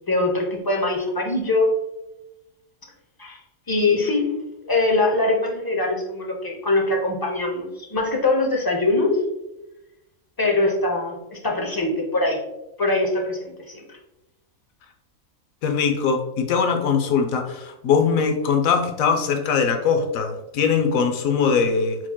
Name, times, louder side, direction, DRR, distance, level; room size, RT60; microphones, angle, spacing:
voice 1, 0.1-1.7 3.2-3.4 3.7-4.3 4.6-9.2 10.4-12.4 12.8-13.8, left 2 dB, 30° left, 0 dB, 0.4 m, -22 dB
voice 2, 15.6-22.0, left 6 dB, 85° left, 4 dB, 1.0 m, -21 dB
4.4 x 4.2 x 2.2 m, 0.94 s
omnidirectional pair, 1.4 m